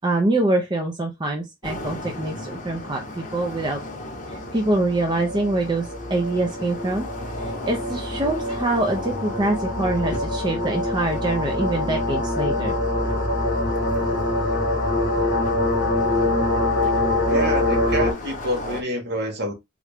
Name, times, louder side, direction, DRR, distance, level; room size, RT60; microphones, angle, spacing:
voice 1, 0.0-3.8 4.5-5.8 6.1-7.1 7.7-12.7, right 2 dB, 20° right, 0.4 m, -24 dB
sound 1, 1.6-18.8, left 1 dB, 40° left, 0.8 m, -38 dB
sound 2, 2.7-2.8 4.3-18.1, left 2 dB, 70° left, 1.0 m, -24 dB
voice 2, 17.3-19.5, equal, 55° right, 0.9 m, -27 dB
3.7 x 2.2 x 3.3 m
head